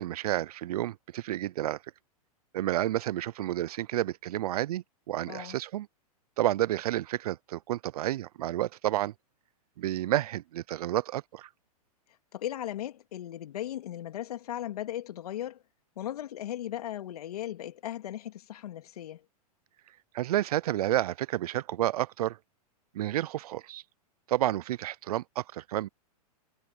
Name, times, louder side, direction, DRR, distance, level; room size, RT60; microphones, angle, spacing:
voice 1, 0.0-1.8 2.5-5.9 6.4-9.1 9.8-11.5 20.1-22.4 22.9-23.8 24.3-25.9, right 14 dB, 75° right, 0.5 m, -30 dB
voice 2, 5.2-5.5 12.3-15.6 16.0-19.2, left 12 dB, 75° left, 2.9 m, -37 dB
hypercardioid pair, 120°, 20 cm